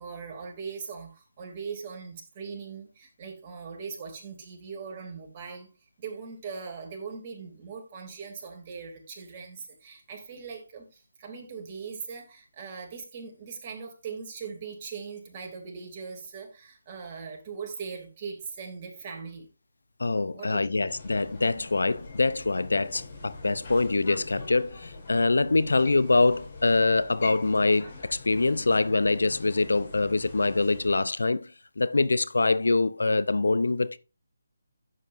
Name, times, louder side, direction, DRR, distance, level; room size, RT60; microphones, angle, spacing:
voice 1, 0.0-5.7 6.0-19.5 20.3-20.9, right 5 dB, 30° right, 2.8 m, -40 dB
voice 2, 20.0-31.5 31.8-34.0, left 3 dB, 75° left, 0.6 m, -24 dB
sound 1, 20.9-31.0, left 3 dB, 45° left, 4.7 m, -44 dB
11.0 x 7.6 x 2.6 m
figure-of-eight pair, 150°, 0 cm